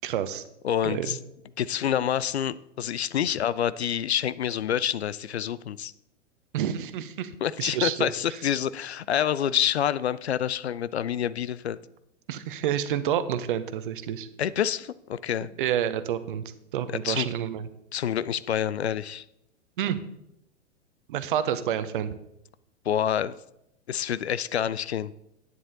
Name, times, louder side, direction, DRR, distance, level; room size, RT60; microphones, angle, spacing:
voice 1, 0.0-0.4 0.8-1.1 6.5-7.3 7.6-8.1 12.3-14.3 15.6-16.4 16.7-17.7 19.8-20.1 21.1-22.2, right 10 dB, 45° right, 13 dB, 0.8 m, -28 dB
voice 2, 0.6-1.2 1.6-5.9 7.4-11.8 14.4-15.5 17.0-17.3 17.9-19.2 22.8-23.3 23.9-25.1, left 9 dB, 60° left, 17 dB, 0.5 m, -27 dB
10.5 x 9.5 x 3.9 m, 0.82 s
figure-of-eight pair, 100°, 36 cm